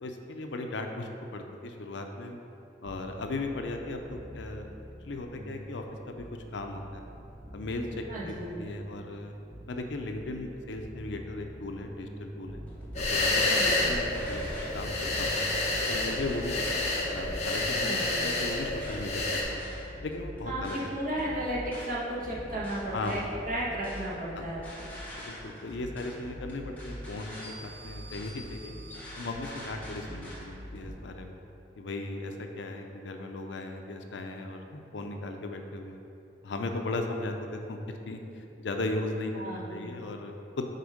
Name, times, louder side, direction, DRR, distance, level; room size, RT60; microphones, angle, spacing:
voice 1, 0.0-2.4 2.8-4.7 5.0-6.2 6.5-7.1 7.5-7.9 8.2-9.3 9.7-12.6 13.0-14.5 14.7-15.4 15.9-19.7 20.0-20.9 22.9-23.4 25.2-28.7 29.2-31.4 31.8-36.0 36.4-37.8 38.1-38.2 38.6-40.6, left 2 dB, 70° left, 4 dB, 0.6 m, -37 dB
sound 1, 2.8-16.2, right 1 dB, 15° right, 0.5 m, -46 dB
voice 2, 8.1-8.5 13.5-13.9 17.8-18.3 20.5-24.6 39.3-39.7, right 1 dB, 45° right, -6 dB, 1.4 m, -34 dB
sound 2, 12.5-30.9, equal, 10° left, 1.2 m, -43 dB
sound 3, 12.9-19.4, left 2 dB, 35° left, 1.0 m, -29 dB
6.6 x 4.3 x 4.9 m, 2.9 s
head